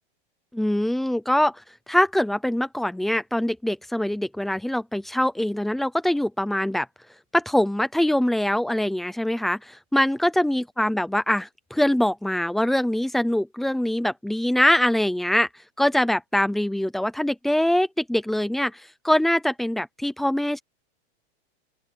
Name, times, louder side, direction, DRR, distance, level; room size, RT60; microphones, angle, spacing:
voice 1, 0.5-1.5 1.9-6.9 7.3-15.5 15.8-20.6, left 1 dB, ahead, 0.4 m, -23 dB
open air
supercardioid pair, 175°, 35 cm